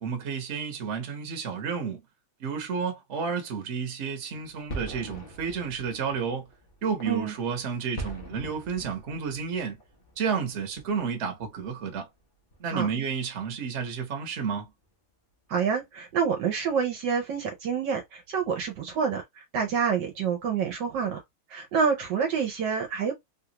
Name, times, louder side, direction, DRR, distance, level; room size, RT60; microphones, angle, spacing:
voice 1, 0.0-2.0 2.4-6.5 6.8-9.8 10.2-12.1 12.6-14.7, right 6 dB, 45° right, 1.0 m, -31 dB
sound 1, 4.3-12.2 12.5-13.0 13.4-13.5 13.9-14.0 14.4-14.9, right 1 dB, 70° left, 0.5 m, -43 dB
voice 2, 15.5-21.2 21.5-23.1, right 6 dB, 70° right, 1.2 m, -27 dB
3.4 x 2.4 x 2.8 m
omnidirectional pair, 2.3 m